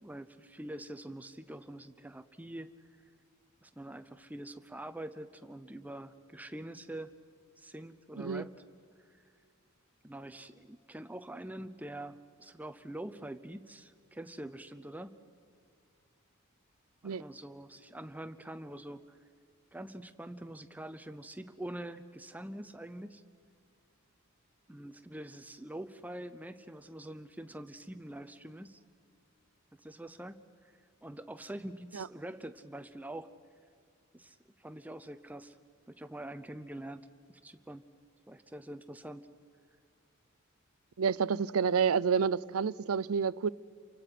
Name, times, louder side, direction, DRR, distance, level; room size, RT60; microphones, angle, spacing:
voice 1, 0.0-2.7 3.6-7.1 7.6-8.5 9.1-9.2 10.0-15.2 17.0-19.2 19.7-23.2 24.7-28.8 29.8-30.7 31.0-33.3 34.1-35.6 35.9-37.8 38.3-39.3, right 1 dB, 10° right, 0.6 m, -45 dB
voice 2, 41.0-43.5, right 6 dB, 85° right, 0.5 m, -29 dB
29.5 x 25.0 x 5.9 m
head